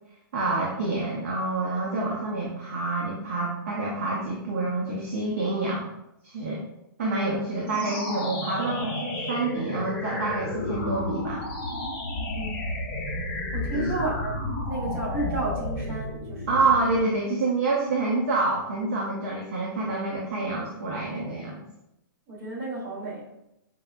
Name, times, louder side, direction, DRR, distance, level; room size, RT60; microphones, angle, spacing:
voice 1, 0.3-5.8 6.2-6.6 7.0-11.4 13.7-13.9 16.5-21.6, right 3 dB, 40° right, -3 dB, 0.5 m, -27 dB
sound 1, 7.6-17.1, left 1 dB, 30° left, 0.9 m, -32 dB
voice 2, 13.5-16.6 22.3-23.3, right 2 dB, 25° right, -6 dB, 1.2 m, -32 dB
4.7 x 2.2 x 2.4 m, 0.85 s
hypercardioid pair, 175°, 12 cm